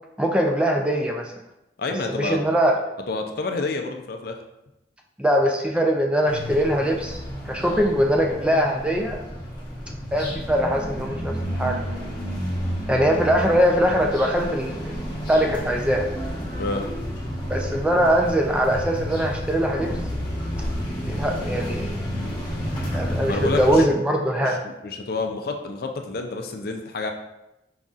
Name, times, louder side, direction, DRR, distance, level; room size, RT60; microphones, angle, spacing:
voice 1, 0.2-1.3 2.1-2.8 5.2-7.2 7.5-9.2 10.1-11.8 12.9-16.1 17.5-19.9 21.0-22.0 22.9-24.6, equal, 5° right, 0 dB, 0.4 m, -22 dB
voice 2, 1.8-2.4 3.1-4.4 16.6-16.8 23.3-23.9 24.5-27.1, left 3 dB, 55° left, 4 dB, 0.4 m, -29 dB
sound 1, 6.3-23.8, equal, 25° left, 1.0 m, -30 dB
4.8 x 4.0 x 2.4 m, 0.90 s
head